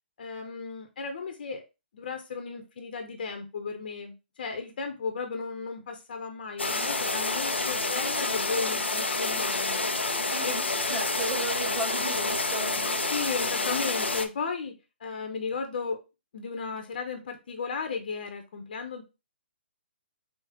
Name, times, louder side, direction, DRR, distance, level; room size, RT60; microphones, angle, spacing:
voice 1, 0.2-1.6 1.9-9.8 10.4-10.5 13.1-14.7 15.0-16.0 16.3-19.0, left 5 dB, 55° left, 5 dB, 0.9 m, -35 dB
sound 1, 6.6-14.3, left 3 dB, 90° left, 0.6 m, -28 dB
voice 2, 10.3-10.6 10.9-13.0, right 2 dB, 15° right, -5 dB, 2.4 m, -35 dB
5.7 x 2.4 x 3.6 m, 0.27 s
figure-of-eight pair, 130°, 6 cm